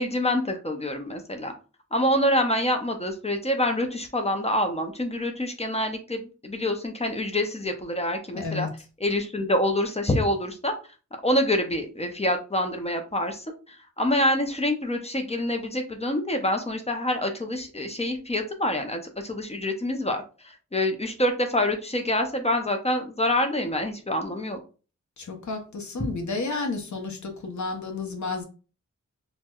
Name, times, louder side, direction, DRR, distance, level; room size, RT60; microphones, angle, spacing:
voice 1, 0.0-1.5 1.9-8.7 9.0-10.7 11.2-24.6, left 1 dB, 20° left, 0.5 m, -26 dB
voice 2, 8.3-8.7 25.2-28.4, left 3 dB, 70° left, 0.7 m, -31 dB
4.3 x 2.1 x 2.3 m
wide cardioid pair, 85°, 30 cm